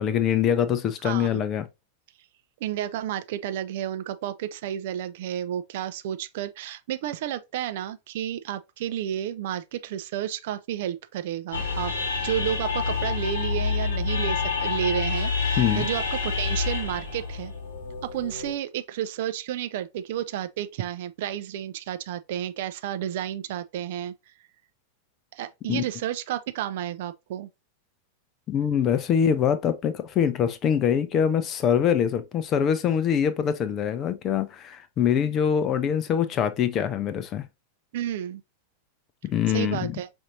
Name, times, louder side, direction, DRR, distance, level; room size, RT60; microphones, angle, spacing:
voice 1, 0.0-1.7 15.6-15.9 25.7-25.8 28.5-37.4 39.2-40.0, left 8 dB, 30° left, 0.5 m, -24 dB
voice 2, 2.6-11.9 12.2-17.5 18.1-24.1 25.3-27.5 37.9-38.4 39.5-40.1, right 11 dB, 55° right, 0.4 m, -31 dB
sound 1, 11.5-18.5, left 5 dB, 65° left, 1.2 m, -28 dB
5.1 x 2.6 x 2.6 m
figure-of-eight pair, 90°, 0 cm